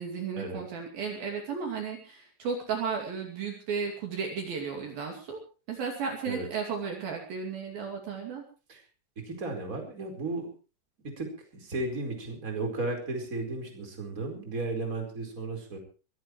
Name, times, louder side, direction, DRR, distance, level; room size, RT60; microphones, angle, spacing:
voice 1, 0.0-5.4 5.7-8.4, right 6 dB, 55° right, 2 dB, 4.1 m, -34 dB
voice 2, 9.2-10.5 11.0-15.8, right 2 dB, 20° right, 3 dB, 4.6 m, -34 dB
23.0 x 17.5 x 3.2 m, 0.35 s
omnidirectional pair, 5.2 m